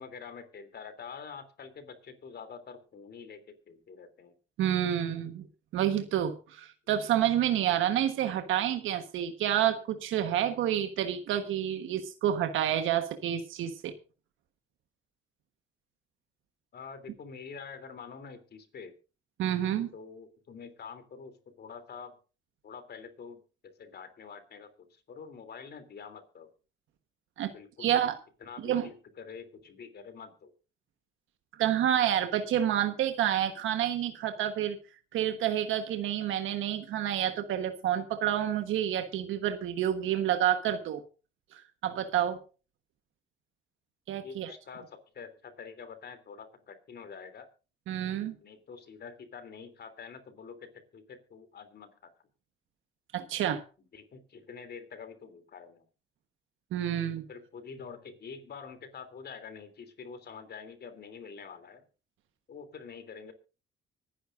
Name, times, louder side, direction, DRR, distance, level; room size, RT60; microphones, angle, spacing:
voice 1, 0.0-4.3 16.7-18.9 19.9-22.1 22.6-26.5 27.5-27.9 28.4-30.5 44.2-47.5 48.4-52.1 53.9-55.8 57.3-61.8 62.5-63.3, left 6 dB, 55° left, 9 dB, 3.3 m, -46 dB
voice 2, 4.6-5.5 5.7-13.9 19.4-19.9 27.4-27.5 27.8-28.2 28.6-28.9 31.6-34.8 35.1-41.0 41.5-42.4 44.1-44.5 47.9-48.3 53.1-53.6 56.7-57.2, right 10 dB, 85° right, 7 dB, 1.4 m, -29 dB
24.5 x 10.0 x 2.6 m, 0.33 s
cardioid pair, 90°, 20 cm